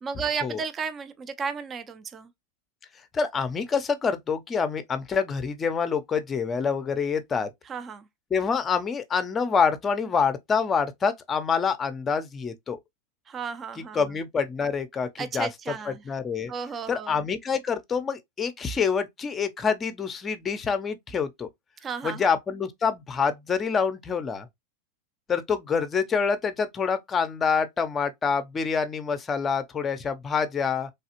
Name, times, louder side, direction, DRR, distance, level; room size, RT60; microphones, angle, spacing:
voice 1, 0.0-2.3 7.7-8.1 13.3-14.0 15.2-16.0 16.5-17.2 21.8-22.3, right 6 dB, 25° right, 0.5 m, -33 dB
voice 2, 3.1-7.5 8.3-12.8 13.9-15.5 16.1-16.5 16.9-21.5 22.0-24.5 25.3-30.9, left 6 dB, 25° left, 0.5 m, -26 dB
3.3 x 2.3 x 2.9 m
hypercardioid pair, 110°, 0 cm